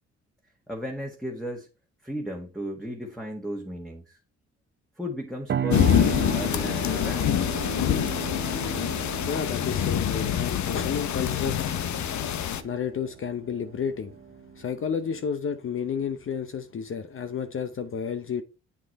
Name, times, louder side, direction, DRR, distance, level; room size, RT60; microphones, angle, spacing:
voice 1, 0.7-1.7 2.0-4.2 5.0-6.1 6.3-7.3, equal, ahead, 1.6 m, -35 dB
sound 1, 5.5-15.2, right 8 dB, 40° right, 0.7 m, -36 dB
sound 2, 5.7-12.6, left 10 dB, 70° left, 1.0 m, -26 dB
voice 2, 9.2-11.6 12.6-14.1 14.5-18.4, left 7 dB, 45° left, 0.8 m, -31 dB
8.1 x 5.9 x 4.2 m
cardioid pair, 90°, 30 cm